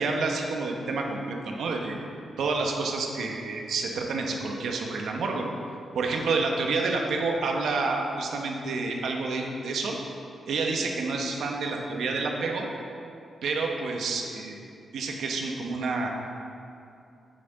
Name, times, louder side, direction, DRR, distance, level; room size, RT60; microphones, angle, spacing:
voice 1, 0.0-2.0 2.4-5.4 5.9-10.0 10.5-12.7 13.4-14.6 14.9-16.1, right 3 dB, 75° right, 1 dB, 1.0 m, -29 dB
8.5 x 7.6 x 3.9 m, 2.6 s
wide cardioid pair, 165°, 0 cm